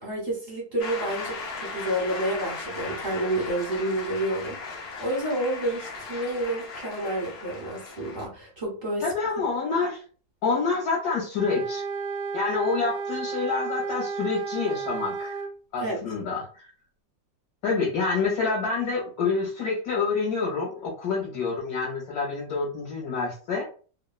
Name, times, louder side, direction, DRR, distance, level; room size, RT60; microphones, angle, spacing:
voice 1, 0.0-9.1 15.8-16.0, right 1 dB, 40° right, -4 dB, 0.6 m, -29 dB
Shout / Cheering / Applause, 0.8-8.3, left 4 dB, 80° left, 0.5 m, -37 dB
voice 2, 9.0-10.0 10.4-11.8 12.3-15.4 15.7-16.7 17.6-23.6, left 4 dB, 65° left, -3 dB, 1.1 m, -27 dB
sound 1, 11.3-15.5, right 5 dB, 65° right, 0.8 m, -32 dB
3.0 x 2.1 x 2.3 m, 0.39 s
omnidirectional pair, 2.0 m